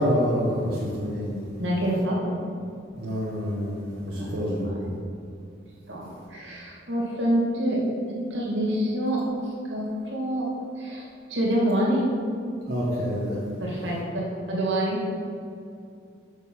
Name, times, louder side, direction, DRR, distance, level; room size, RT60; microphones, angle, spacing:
voice 1, 0.0-1.6 3.0-4.9 12.7-13.4, equal, 50° right, -7 dB, 1.2 m, -27 dB
voice 2, 1.6-2.3 3.9-4.9 5.9-7.9 8.3-10.5 10.8-12.2 13.6-15.1, right 1 dB, 80° right, -4 dB, 2.2 m, -27 dB
6.7 x 6.4 x 5.4 m, 2.4 s
head